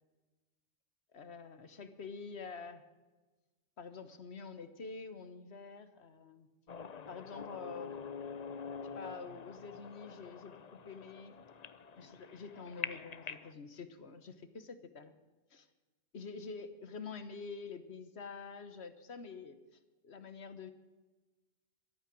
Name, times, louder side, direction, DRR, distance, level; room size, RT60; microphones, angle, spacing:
voice 1, 1.1-2.8 3.8-6.5 7.1-7.9 8.9-10.5 10.8-11.3 12.0-15.1 15.5-15.7 16.1-19.6 20.0-20.7, left 4 dB, 60° left, 11 dB, 1.5 m, -47 dB
sound 1, 6.7-13.5, left 6 dB, 40° left, 0.7 m, -46 dB
22.5 x 8.9 x 6.2 m, 1.2 s
omnidirectional pair, 1.3 m